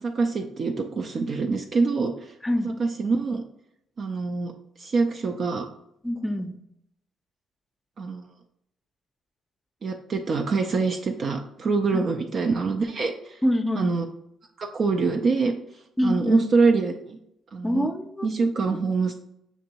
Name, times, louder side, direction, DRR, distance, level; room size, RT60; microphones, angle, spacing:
voice 1, 0.0-2.3 2.6-3.4 4.0-4.5 4.8-5.7 8.0-8.2 9.8-13.4 13.8-14.1 14.6-15.5 16.0-17.2 17.5-17.9 18.2-19.2, right 4 dB, 50° right, 4 dB, 0.4 m, -25 dB
voice 2, 6.0-6.5 11.9-12.1 13.4-13.9 16.0-16.5 17.6-18.3 18.7-18.8, equal, 15° left, 8 dB, 0.5 m, -25 dB
6.7 x 2.6 x 2.9 m, 0.79 s
cardioid pair, 90°, 0 cm